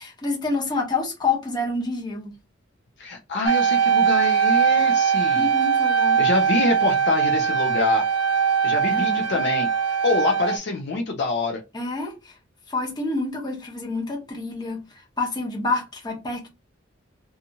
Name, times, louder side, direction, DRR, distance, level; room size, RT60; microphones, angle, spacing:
voice 1, 0.0-2.4 5.3-6.2 8.9-9.5 11.7-12.3 12.7-16.5, left 3 dB, 20° left, 0.9 m, -28 dB
voice 2, 3.0-5.5 6.2-8.0 8.6-9.7 10.0-11.6, left 3 dB, 60° left, 0.5 m, -25 dB
sound 1, 3.5-10.6, right 7 dB, 80° right, 0.5 m, -21 dB
2.7 x 2.4 x 2.7 m
head